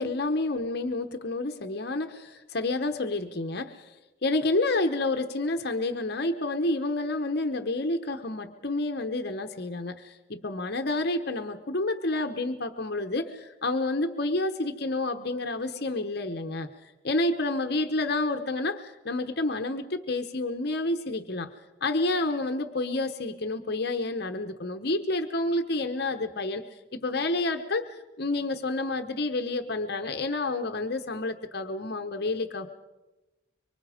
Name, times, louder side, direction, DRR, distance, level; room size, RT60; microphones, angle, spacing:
voice 1, 0.0-3.9 4.2-21.5 21.8-32.7, left 2 dB, 55° left, 6 dB, 0.9 m, -29 dB
25.0 x 24.0 x 5.0 m, 1.1 s
head